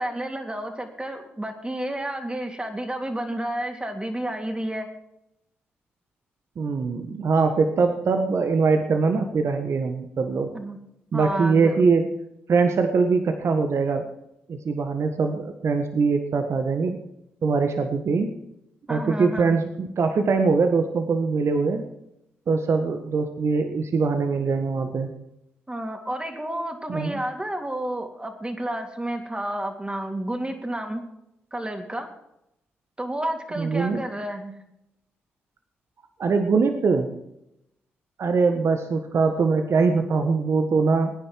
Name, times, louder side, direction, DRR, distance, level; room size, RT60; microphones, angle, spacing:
voice 1, 0.0-4.9 10.5-10.8 11.1-11.9 18.9-19.6 25.7-31.0 31.5-32.1 33.0-34.6, right 1 dB, 20° right, 4 dB, 3.3 m, -31 dB
voice 2, 6.6-10.5 11.1-12.1 12.5-14.1 14.5-17.0 17.4-18.3 18.9-21.8 22.5-25.1 26.9-27.2 33.6-34.0 36.2-37.1 38.2-41.1, right 4 dB, 55° right, 6 dB, 1.5 m, -22 dB
21.5 x 10.0 x 4.7 m, 0.82 s
hypercardioid pair, 40°, 5 cm